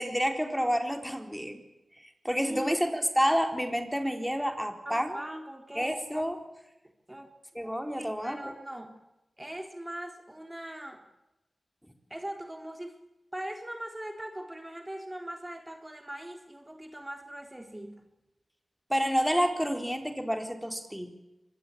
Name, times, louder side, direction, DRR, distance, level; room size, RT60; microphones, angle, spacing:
voice 1, 0.0-1.6 2.2-5.2 5.8-6.4 7.5-8.5 18.9-21.1, equal, ahead, 6 dB, 4.1 m, -29 dB
voice 2, 4.9-6.0 7.1-7.3 8.0-8.9 9.4-11.0 12.1-12.9 13.3-17.9, right 1 dB, 20° right, 5 dB, 3.8 m, -40 dB
25.0 x 21.0 x 8.7 m, 0.95 s
cardioid pair, 45°, 0 cm